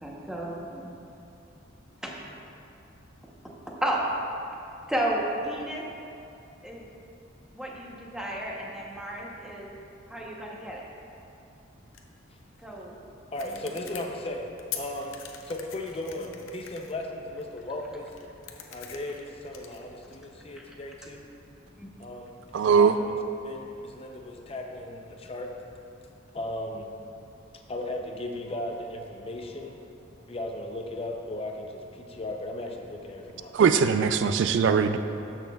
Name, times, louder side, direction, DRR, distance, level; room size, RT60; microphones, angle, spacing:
voice 1, 0.0-1.0 2.0-2.3 3.7-4.0 4.9-5.8 6.6-6.8 7.5-9.7 10.1-10.8 12.6-12.9 13.5-13.6 18.6-18.8 21.8-21.9, right 1 dB, 5° right, -3 dB, 0.8 m, -32 dB
sound 1, 11.9-20.2, left 8 dB, 80° left, 0.6 m, -46 dB
voice 2, 13.3-15.2 15.4-18.1 18.7-21.3 22.0-23.1 23.4-25.5 26.3-26.9 27.5-29.8 30.3-34.0, left 1 dB, 30° left, 2 dB, 0.5 m, -36 dB
voice 3, 22.5-23.0 33.5-35.0, right 6 dB, 65° right, 9 dB, 0.3 m, -21 dB
12.5 x 6.1 x 2.3 m, 2.7 s
head